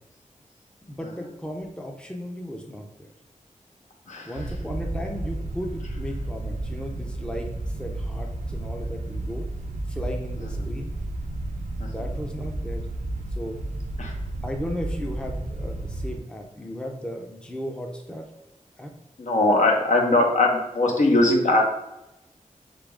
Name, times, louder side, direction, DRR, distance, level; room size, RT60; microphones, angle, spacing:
voice 1, 0.9-3.1 4.2-9.5 9.9-10.9 11.8-12.9 13.3-13.6 14.4-18.2 18.8-18.9, equal, 5° left, 3 dB, 0.6 m, -35 dB
sound 1, 4.3-16.2, right 1 dB, 75° right, 0.6 m, -32 dB
voice 2, 19.2-21.6, left 2 dB, 65° left, 1 dB, 0.9 m, -21 dB
3.9 x 3.7 x 3.5 m, 0.91 s
wide cardioid pair, 85°, 13 cm